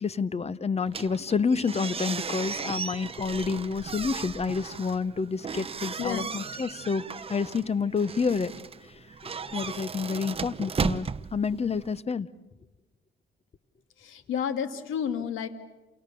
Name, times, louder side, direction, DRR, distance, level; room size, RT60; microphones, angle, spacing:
voice 1, 0.0-8.5 8.8-8.9 9.2-12.3, left 5 dB, 30° left, 18 dB, 0.9 m, -29 dB
sound 1, 0.9-12.0, right 5 dB, 30° right, 0.8 m, -36 dB
voice 2, 6.0-6.3 14.0-15.5, left 8 dB, 90° left, 9 dB, 2.1 m, -31 dB
29.0 x 28.5 x 7.0 m, 1.1 s
cardioid pair, 90°, 20 cm